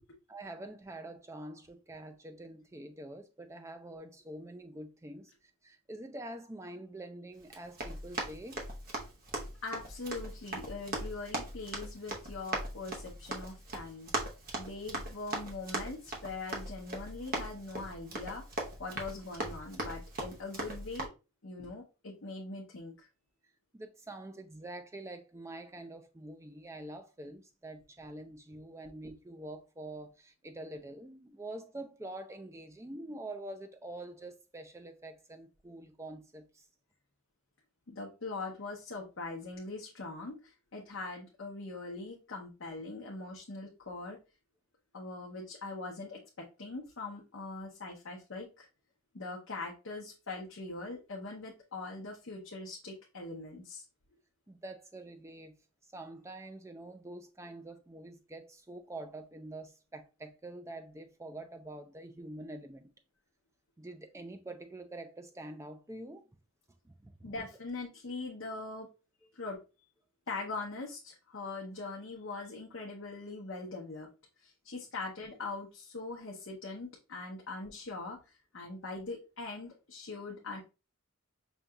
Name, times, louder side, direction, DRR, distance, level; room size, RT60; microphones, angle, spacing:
voice 1, 0.3-5.3 5.6-8.6 23.7-36.6 54.5-55.5 55.9-62.9 63.8-66.3 66.8-67.3, right 1 dB, 15° right, 0.4 m, -46 dB
Run, 7.4-21.1, right 1 dB, 40° right, 0.8 m, -40 dB
voice 2, 9.6-14.1 14.6-18.4 18.8-21.1 21.4-23.1 37.9-44.2 44.9-46.2 46.6-48.7 49.1-53.8 67.2-68.9 69.3-69.6 70.3-74.1 74.4-78.2 78.5-80.6, left 3 dB, 60° left, 0.8 m, -42 dB
5.3 x 2.8 x 2.3 m
head